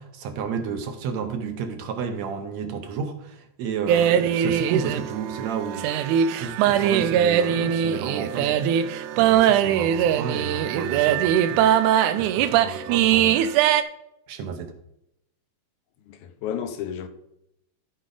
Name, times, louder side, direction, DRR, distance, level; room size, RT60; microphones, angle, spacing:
voice 1, 0.0-6.1 6.4-8.8 9.1-11.7 12.2-13.4 14.3-14.7, right 6 dB, 70° right, 2.0 m, -32 dB
sound 1, 3.9-13.8, right 10 dB, 90° right, 2.0 m, -21 dB
voice 2, 16.1-17.1, left 9 dB, 80° left, 2.1 m, -32 dB
13.5 x 4.8 x 3.8 m
omnidirectional pair, 3.5 m